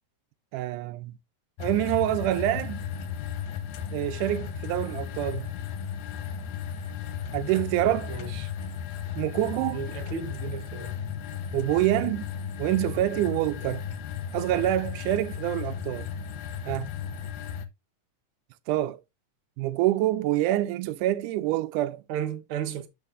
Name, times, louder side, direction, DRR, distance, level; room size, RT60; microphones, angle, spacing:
voice 1, 0.5-1.2 1.6-2.9 3.9-5.5 7.3-8.1 9.2-9.8 11.5-12.3 12.6-13.8 14.3-16.1 16.7-16.9 18.7-19.0 19.6-22.0, right 14 dB, 85° right, 2.1 m, -26 dB
sound 1, 1.6-17.7, left 8 dB, 75° left, 2.0 m, -35 dB
voice 2, 8.1-8.5 9.7-11.0 22.1-22.9, right 8 dB, 65° right, 1.3 m, -34 dB
12.0 x 4.6 x 2.4 m
omnidirectional pair, 3.6 m